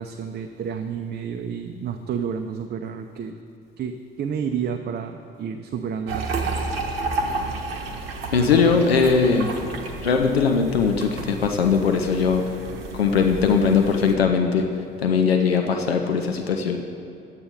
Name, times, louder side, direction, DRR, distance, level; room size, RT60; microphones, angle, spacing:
voice 1, 0.0-3.4 3.8-6.3, right 7 dB, 35° right, 5 dB, 0.6 m, -30 dB
sound 1, 6.1-14.2, right 3 dB, 75° right, 0.9 m, -31 dB
voice 2, 8.3-9.5 10.0-12.4 12.9-14.6 15.0-16.8, left 5 dB, 85° left, 4 dB, 0.6 m, -20 dB
10.5 x 8.7 x 5.2 m, 2.8 s
figure-of-eight pair, 45°, 30 cm